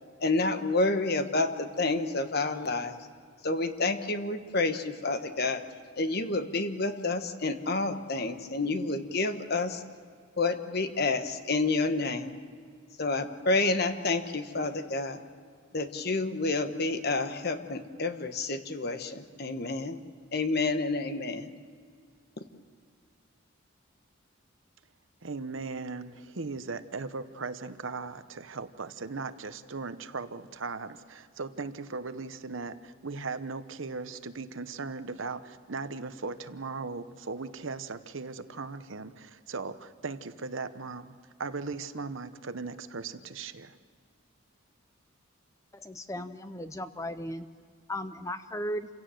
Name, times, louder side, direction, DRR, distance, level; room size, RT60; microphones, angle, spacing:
voice 1, 0.2-2.9 3.4-5.6 6.0-9.8 10.4-12.3 13.0-15.2 15.7-20.0 20.3-21.5, left 3 dB, 50° left, 8 dB, 1.3 m, -29 dB
voice 2, 25.2-41.1 41.4-43.8, right 4 dB, 70° right, 11 dB, 1.0 m, -38 dB
voice 3, 45.7-47.5 47.9-48.9, equal, 15° left, 11 dB, 0.6 m, -36 dB
27.5 x 17.0 x 7.7 m, 2.1 s
head